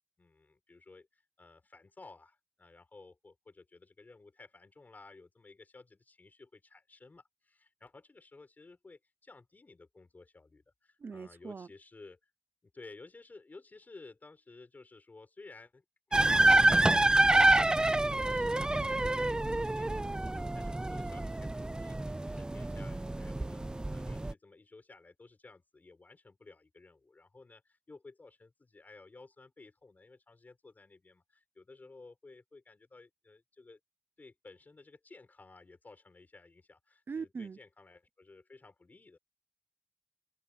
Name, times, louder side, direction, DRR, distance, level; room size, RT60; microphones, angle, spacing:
voice 1, 0.2-12.3 12.6-33.8 34.2-39.2, left 3 dB, 50° left, 6.3 m, -55 dB
voice 2, 11.0-11.7 37.1-37.6, right 5 dB, 70° right, 0.7 m, -41 dB
sound 1, 16.1-24.3, right 2 dB, 20° right, 0.5 m, -27 dB
open air
wide cardioid pair, 65°, 4 cm